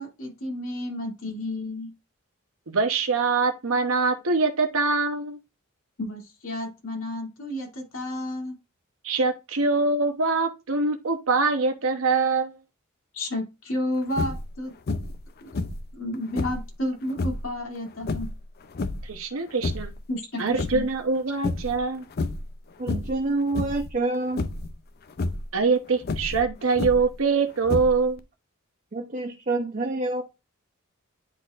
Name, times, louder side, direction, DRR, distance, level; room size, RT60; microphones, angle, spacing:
voice 1, 0.0-1.9 6.0-8.6 13.1-14.7 15.5-15.6 15.9-18.3 20.1-20.9, left 1 dB, 70° left, 2.5 m, -31 dB
voice 2, 2.7-5.4 9.0-12.6 19.0-19.9 20.4-22.0 25.5-28.2, right 4 dB, 75° right, 0.8 m, -24 dB
sound 1, 14.1-14.5 14.9-15.2 15.5-16.7 17.1-17.5 18.0-19.1 19.5-20.0 20.4-21.2 21.4-21.8 22.1-22.5 22.9-23.2 23.5-23.9 24.4-24.7 25.1-25.5 26.0-27.2 27.6-28.2, left 3 dB, 50° left, 0.5 m, -30 dB
voice 3, 22.8-24.5 28.9-30.2, right 2 dB, 40° right, 0.8 m, -27 dB
9.9 x 4.1 x 2.4 m
head